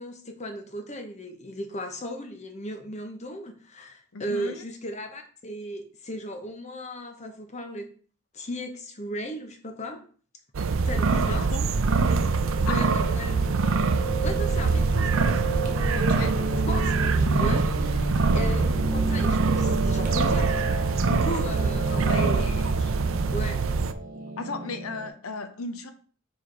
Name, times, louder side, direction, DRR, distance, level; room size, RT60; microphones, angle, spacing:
voice 1, 0.0-7.9 8.3-10.0 10.8-11.5 12.7-13.8 14.2-15.4 16.7-16.9 17.4-20.6 21.1-22.9 23.3-23.6, equal, 35° left, 1.0 m, -36 dB
voice 2, 4.1-4.6 11.1-11.6 12.6-12.9 15.9-16.6 21.9-22.7 24.4-25.9, left 3 dB, 85° left, 0.8 m, -36 dB
sound 1, 10.5-23.9, right 4 dB, 70° right, 0.5 m, -24 dB
Piano, 10.6-25.1, right 2 dB, 40° right, 1.4 m, -32 dB
4.8 x 4.4 x 4.7 m
head